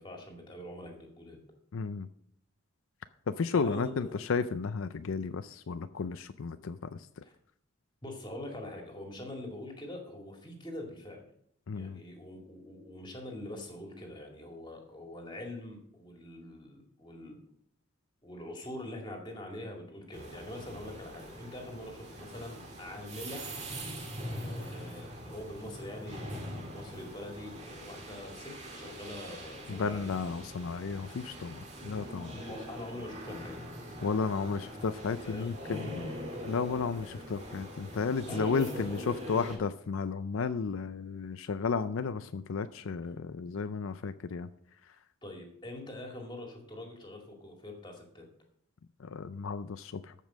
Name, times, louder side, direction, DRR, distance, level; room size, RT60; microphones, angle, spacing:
voice 1, 0.0-1.4 3.5-4.1 7.2-7.3 8.0-11.3 11.7-17.4 18.2-23.4 24.3-30.1 32.5-33.6 35.2-35.6 38.3-39.2 45.2-48.2, left 1 dB, 20° left, 2 dB, 2.2 m, -44 dB
voice 2, 1.7-2.1 3.3-7.1 11.7-12.0 29.7-32.4 34.0-36.2 36.4-44.5 49.0-50.1, left 5 dB, 75° left, 11 dB, 0.5 m, -33 dB
sound 1, 20.1-39.6, equal, 35° right, 1.9 m, -43 dB
13.5 x 5.5 x 6.2 m, 0.68 s
head